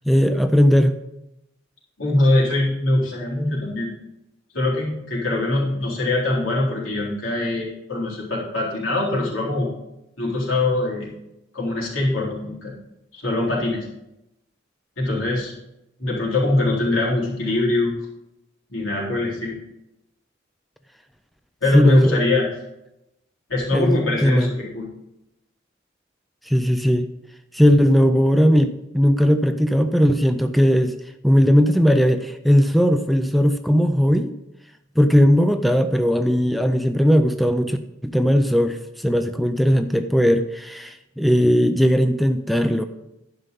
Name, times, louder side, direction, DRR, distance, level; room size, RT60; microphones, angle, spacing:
voice 1, 0.1-1.0 21.7-22.2 23.7-24.5 26.5-27.1 27.5-31.0 31.2-34.4 35.0-37.8 38.0-42.8, equal, ahead, 7 dB, 0.4 m, -18 dB
voice 2, 2.0-3.9 4.5-9.7 10.2-11.1 11.5-12.7 13.1-13.9 15.0-15.5 16.0-17.9 18.7-19.6 21.6-22.5 23.5-24.9, left 2 dB, 85° left, -5 dB, 3.8 m, -22 dB
11.5 x 5.5 x 5.3 m, 0.89 s
head